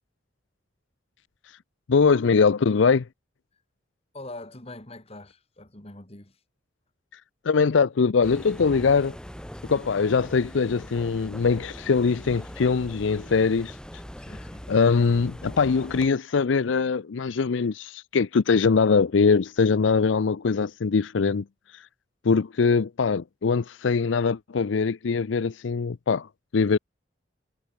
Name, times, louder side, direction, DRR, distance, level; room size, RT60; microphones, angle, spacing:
voice 1, 1.9-3.1 7.5-9.2 9.7-13.8 14.7-21.4 22.2-26.3 26.5-26.8, left 5 dB, 90° left, 0.5 m, -22 dB
voice 2, 4.1-6.4 9.6-9.9 14.2-14.8, left 2 dB, 35° left, 2.4 m, -44 dB
sound 1, 8.2-16.1, equal, 5° left, 1.9 m, -41 dB
head